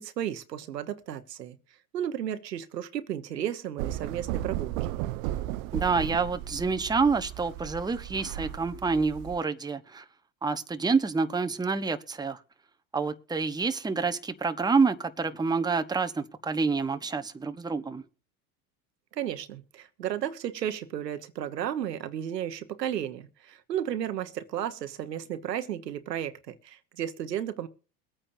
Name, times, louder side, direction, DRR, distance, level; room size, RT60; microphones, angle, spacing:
voice 1, 0.0-1.6 1.9-4.7 19.1-27.7, right 10 dB, 85° right, 1.1 m, -33 dB
sound 1, 3.8-9.4, right 13 dB, 60° right, 0.6 m, -35 dB
voice 2, 5.7-10.0 10.4-12.4 12.9-18.0, right 4 dB, 10° right, 0.9 m, -28 dB
23.0 x 8.9 x 2.7 m
hypercardioid pair, 80°, 47 cm